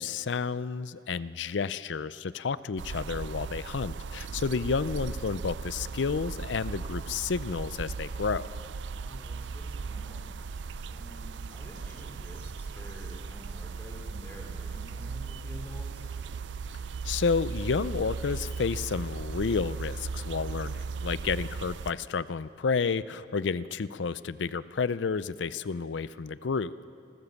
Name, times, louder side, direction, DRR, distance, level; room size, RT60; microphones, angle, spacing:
voice 1, 0.0-8.5 17.0-26.9, left 5 dB, 80° left, 17 dB, 0.5 m, -31 dB
sound 1, 2.8-21.9, right 4 dB, 75° right, 0.5 m, -37 dB
voice 2, 8.9-10.3 10.9-16.1, left 1 dB, 15° left, -1 dB, 3.4 m, -48 dB
29.0 x 13.0 x 7.1 m, 2.6 s
head